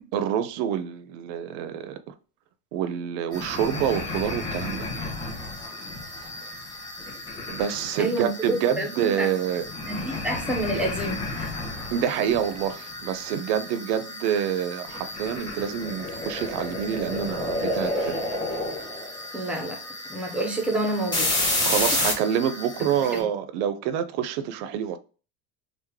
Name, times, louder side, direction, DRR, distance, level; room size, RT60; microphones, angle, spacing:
voice 1, 0.1-2.1 2.7-4.9 7.5-9.7 11.9-18.2 21.6-25.0, right 9 dB, 65° right, 0.5 m, -27 dB
sound 1, 3.3-23.2, left 1 dB, 10° left, 0.8 m, -31 dB
voice 2, 8.0-8.3 8.8-9.3 9.8-11.5 19.3-19.8 20.1-21.3 23.0-23.3, right 1 dB, 5° right, 0.4 m, -28 dB
3.1 x 2.0 x 3.4 m
cardioid pair, 160°, 34 cm